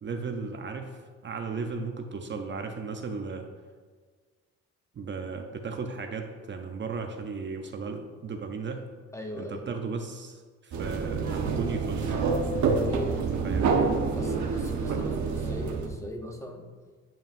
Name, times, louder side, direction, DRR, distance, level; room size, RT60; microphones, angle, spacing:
voice 1, 0.0-3.5 5.0-8.8 9.4-12.2 13.4-13.9, right 4 dB, 40° right, 5 dB, 0.6 m, -35 dB
voice 2, 9.1-9.7 12.8-13.4 14.1-16.7, left 1 dB, 10° left, 3 dB, 0.7 m, -39 dB
sound 1, 10.7-15.9, right 4 dB, 70° right, 1.0 m, -27 dB
9.0 x 5.3 x 2.5 m, 1.5 s
cardioid pair, 90°, 30 cm